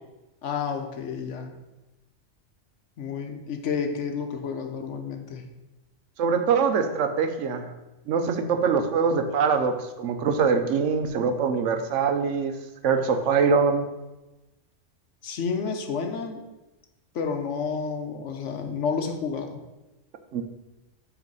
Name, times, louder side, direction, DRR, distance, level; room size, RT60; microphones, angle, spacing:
voice 1, 0.4-1.6 3.0-5.5 15.2-16.4 17.1-19.6, left 6 dB, 70° left, 5 dB, 1.1 m, -30 dB
voice 2, 6.2-7.7 8.1-12.5 12.8-13.8 20.3-20.4, right 5 dB, 75° right, 7 dB, 1.0 m, -23 dB
8.0 x 3.2 x 5.3 m, 1.0 s
omnidirectional pair, 1.3 m